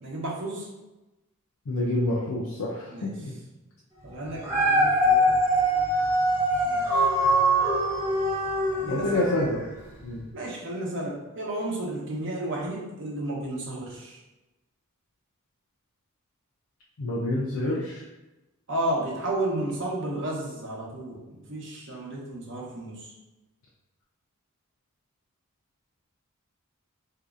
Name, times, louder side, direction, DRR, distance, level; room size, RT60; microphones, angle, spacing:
voice 1, 0.0-0.7 2.9-3.1 4.0-5.4 6.6-7.1 8.7-9.3 10.3-14.2 18.7-23.1, right 1 dB, 55° right, -2 dB, 0.8 m, -32 dB
voice 2, 1.7-3.3 8.9-9.6 10.0-10.2 17.0-18.0, left 1 dB, 70° left, -4 dB, 0.5 m, -27 dB
Dog, 4.3-9.6 10.1-10.2, right 1 dB, 10° right, 0.6 m, -23 dB
3.9 x 2.7 x 2.4 m, 1.0 s
head